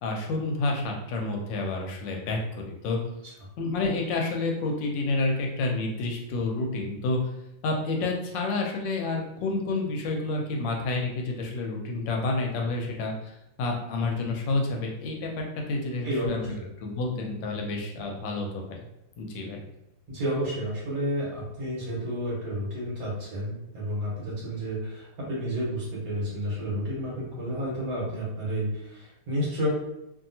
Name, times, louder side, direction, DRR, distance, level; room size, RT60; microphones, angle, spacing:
voice 1, 0.0-3.0 3.6-7.2 7.6-16.5 16.8-18.8 19.2-19.6, left 2 dB, 75° left, 1 dB, 1.2 m, -29 dB
voice 2, 16.0-16.6 20.1-29.7, equal, 55° right, -6 dB, 1.3 m, -31 dB
2.9 x 2.7 x 2.7 m, 0.85 s
omnidirectional pair, 2.1 m